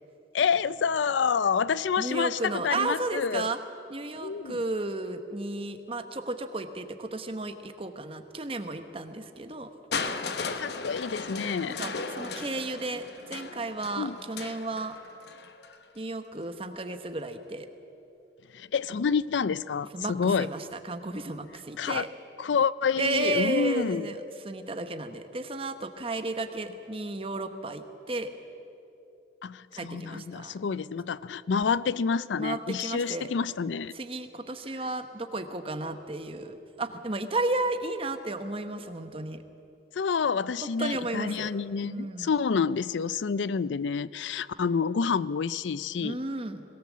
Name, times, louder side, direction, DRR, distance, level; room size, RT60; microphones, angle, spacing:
voice 1, 0.3-3.5 4.2-4.6 10.4-11.8 14.0-14.2 18.5-20.5 21.8-22.1 22.4-24.1 29.4-33.9 40.0-46.2, left 6 dB, 85° left, 18 dB, 0.4 m, -28 dB
voice 2, 2.0-3.6 3.9-9.7 11.8-15.0 15.9-17.7 19.9-22.1 23.0-28.3 29.7-30.5 32.4-33.3 33.9-39.4 40.8-41.5 41.8-42.3 46.0-46.6, right 2 dB, 30° right, 8 dB, 1.1 m, -33 dB
Crushing, 9.9-15.8 16.8-16.9, left 4 dB, 60° left, 1.0 m, -36 dB
21.0 x 17.5 x 7.4 m, 2.8 s
head